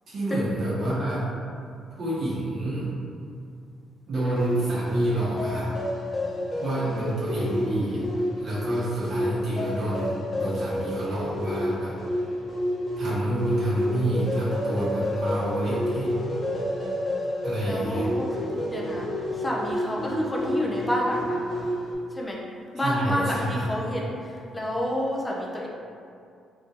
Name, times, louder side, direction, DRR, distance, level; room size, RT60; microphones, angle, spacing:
voice 1, 0.1-1.3 1.9-2.9 4.1-5.7 6.6-8.0 8.4-11.9 12.2-12.3 13.0-16.2 17.4-18.5 22.8-23.7, right 1 dB, 65° right, -9 dB, 1.4 m, -28 dB
sound 1, 4.4-21.9, left 1 dB, 40° left, 0.9 m, -29 dB
voice 2, 6.8-7.4 17.7-19.1 19.3-21.8 22.1-22.4 22.7-25.7, left 1 dB, 20° left, -3 dB, 0.5 m, -30 dB
3.5 x 2.6 x 2.8 m, 2.4 s
cardioid pair, 75°, 0 cm